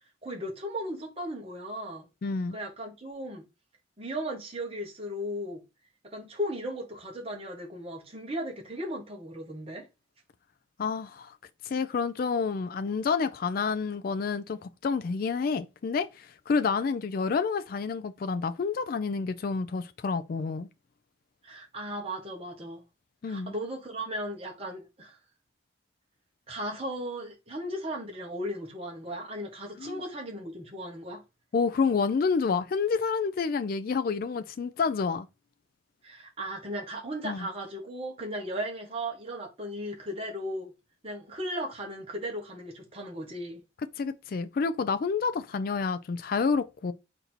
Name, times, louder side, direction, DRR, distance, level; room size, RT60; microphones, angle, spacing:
voice 1, 0.2-2.1 2.5-3.4 4.0-5.6 6.1-9.8 21.4-22.8 23.3-25.2 26.5-31.2 36.0-40.7 41.0-43.6, equal, 30° right, 1.0 m, -36 dB
voice 2, 2.2-2.6 10.8-11.3 11.6-20.7 23.2-23.5 29.8-30.0 31.5-35.3 37.2-37.5 44.0-46.9, left 5 dB, 45° left, 0.3 m, -29 dB
4.0 x 2.6 x 4.3 m
head